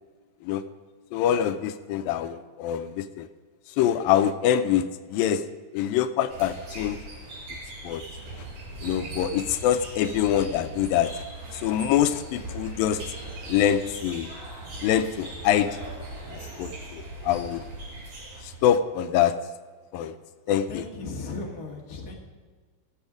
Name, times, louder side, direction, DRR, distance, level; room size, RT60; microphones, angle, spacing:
voice 1, 1.1-3.3 3.8-5.4 5.7-7.0 7.8-8.0 8.8-11.3 11.5-13.0 13.5-14.3 14.8-15.7 16.3-17.6 18.4-19.3 19.9-20.2 20.5-20.8, left 10 dB, 85° left, 10 dB, 2.3 m, -25 dB
sound 1, 6.3-18.8, right 2 dB, 50° right, 5.7 m, -40 dB
voice 2, 20.7-22.2, left 3 dB, 35° left, -1 dB, 1.6 m, -36 dB
17.0 x 7.1 x 5.0 m, 1.5 s
omnidirectional pair, 4.1 m